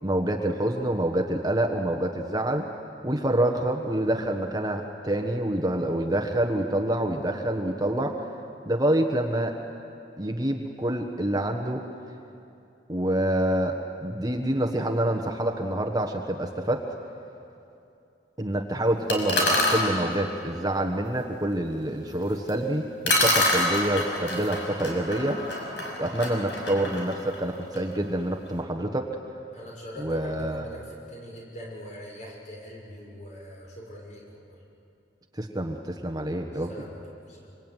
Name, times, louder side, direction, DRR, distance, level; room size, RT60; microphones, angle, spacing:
voice 1, 0.0-2.6 3.0-8.3 8.6-9.6 10.2-11.8 12.9-13.7 14.0-16.8 18.4-25.4 26.0-29.1 30.0-30.7 35.4-36.7, right 1 dB, 20° right, 3 dB, 1.4 m, -27 dB
sound 1, 19.1-19.9 22.5-22.6 23.1-27.9, left 1 dB, 75° left, 5.6 m, -26 dB
voice 2, 29.5-34.6 36.5-37.5, equal, 40° left, -2 dB, 6.5 m, -42 dB
25.5 x 25.0 x 9.1 m, 2.7 s
head